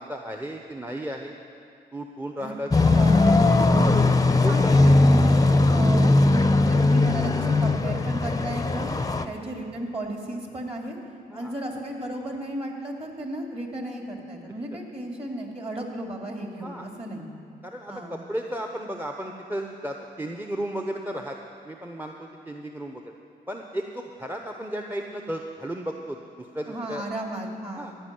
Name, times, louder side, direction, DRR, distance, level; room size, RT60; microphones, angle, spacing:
voice 1, 0.0-1.3 1.9-3.0 4.0-4.1 4.4-4.7 9.1-9.4 11.3-11.5 16.6-16.9 17.6-21.4 21.6-23.1 23.5-27.0 27.7-27.9, right 1 dB, 10° right, 2 dB, 0.9 m, -34 dB
sound 1, 2.7-9.3, left 2 dB, 20° left, 0.7 m, -19 dB
voice 2, 2.9-3.8 4.4-8.9 9.2-11.0 11.3-17.3 17.9-18.2 26.7-28.0, right 1 dB, 35° right, 1 dB, 2.6 m, -34 dB
15.0 x 5.3 x 9.4 m, 2.4 s
supercardioid pair, 50°, 19 cm